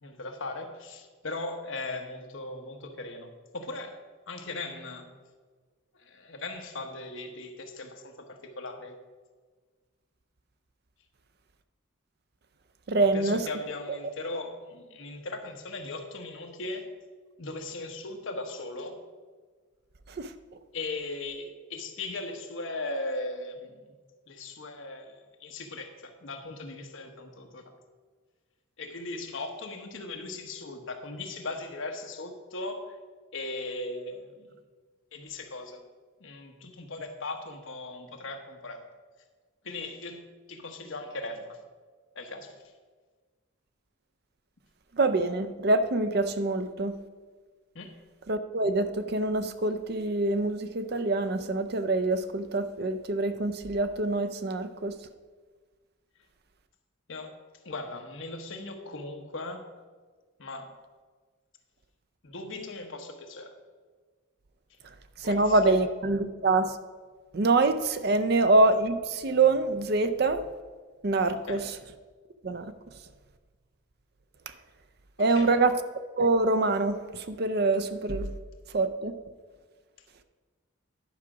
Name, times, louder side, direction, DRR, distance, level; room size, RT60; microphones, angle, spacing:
voice 1, 0.0-4.0 4.3-5.1 6.0-9.0 13.1-16.9 17.4-19.0 20.7-23.9 24.3-27.8 28.8-33.0 33.3-34.5 35.1-35.8 36.2-38.8 39.6-41.6 42.1-42.5 47.7-47.9 57.1-57.3 57.6-59.7 60.4-60.7 62.2-63.5 65.2-65.8 71.5-71.6 75.3-75.5, left 2 dB, 65° left, 4 dB, 1.0 m, -38 dB
voice 2, 12.9-13.5 20.1-20.3 44.9-47.0 48.3-54.9 65.2-66.8 67.3-70.4 71.0-71.6 72.4-72.7 75.2-75.8 76.2-78.3 78.7-79.2, right 2 dB, 50° right, 10 dB, 0.5 m, -25 dB
11.0 x 4.9 x 6.1 m, 1.5 s
head